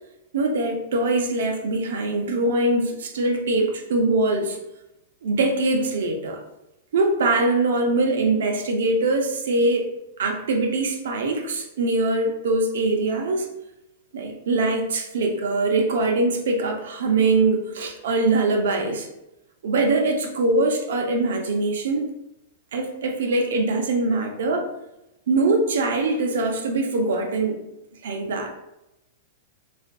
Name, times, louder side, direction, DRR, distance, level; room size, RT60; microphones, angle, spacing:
voice 1, 0.3-4.6 5.2-6.4 6.9-9.9 10.2-13.5 14.1-19.1 19.6-22.1 22.7-24.7 25.3-27.6 28.0-28.5, right 2 dB, 80° right, 3 dB, 0.6 m, -22 dB
3.5 x 2.5 x 2.2 m, 0.89 s
supercardioid pair, 150°, 0 cm